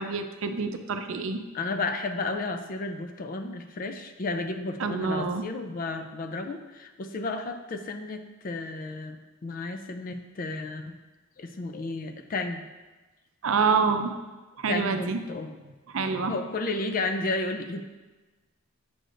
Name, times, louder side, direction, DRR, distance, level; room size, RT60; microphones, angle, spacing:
voice 1, 0.0-1.4 4.8-5.5 13.4-14.1 14.6-15.2 15.9-16.3, right 5 dB, 65° right, 7 dB, 0.5 m, -27 dB
voice 2, 1.5-11.0 11.4-12.7 14.7-15.6 16.2-17.8, left 3 dB, 40° left, 7 dB, 0.4 m, -32 dB
7.7 x 6.6 x 2.5 m, 1.2 s
head